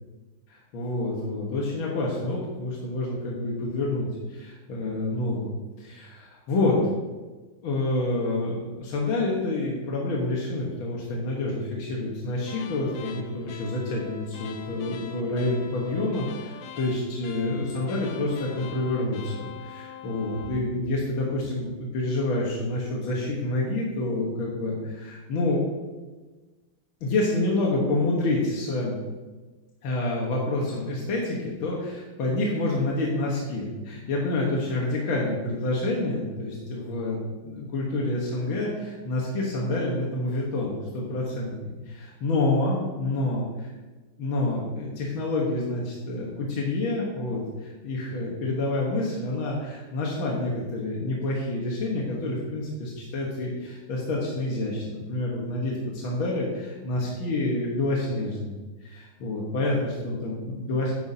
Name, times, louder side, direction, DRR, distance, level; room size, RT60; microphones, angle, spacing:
voice 1, 0.5-7.1 7.6-25.7 27.0-29.0 29.8-43.7 44.2-60.9, left 2 dB, 85° left, -3 dB, 2.1 m, -28 dB
sound 1, 12.5-20.7, left 6 dB, 65° left, 1.1 m, -43 dB
10.0 x 9.5 x 2.8 m, 1.3 s
omnidirectional pair, 2.2 m